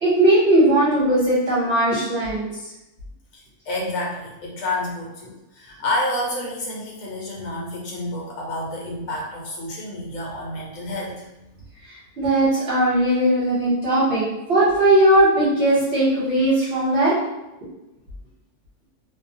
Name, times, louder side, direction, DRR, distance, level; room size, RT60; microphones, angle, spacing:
voice 1, 0.0-2.5 12.2-14.2 14.5-17.2, right 1 dB, 55° right, -10 dB, 1.0 m, -18 dB
voice 2, 3.3-11.5, left 1 dB, 65° left, -2 dB, 1.1 m, -29 dB
2.5 x 2.1 x 2.6 m, 0.94 s
omnidirectional pair, 1.5 m